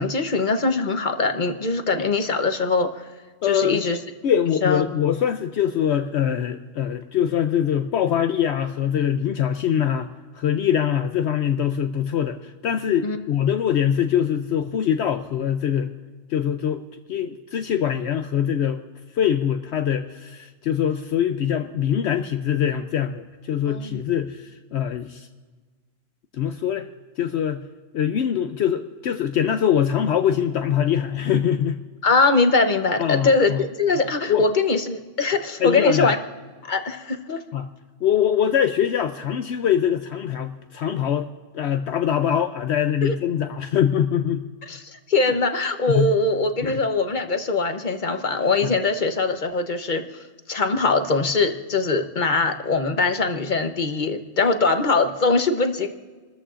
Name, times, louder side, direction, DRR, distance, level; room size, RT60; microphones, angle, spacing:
voice 1, 0.0-3.0 3.4-4.0 4.6-4.8 13.0-13.2 23.7-24.0 32.0-36.2 36.6-37.4 43.0-43.1 44.7-44.8 45.1-50.0 50.5-55.9, left 3 dB, 40° left, 7 dB, 1.0 m, -22 dB
voice 2, 3.4-3.8 4.2-10.1 10.3-15.9 16.3-16.8 17.1-18.8 19.1-25.3 26.3-26.9 27.2-27.6 27.9-31.8 33.0-33.6 34.0-34.4 35.6-36.1 37.5-37.7 38.0-41.3 41.5-44.4 45.3-45.4 45.9-46.1 46.6-46.8 48.6-48.7, left 9 dB, 65° left, 7 dB, 0.8 m, -23 dB
28.5 x 13.5 x 2.5 m, 1.4 s
omnidirectional pair, 1.3 m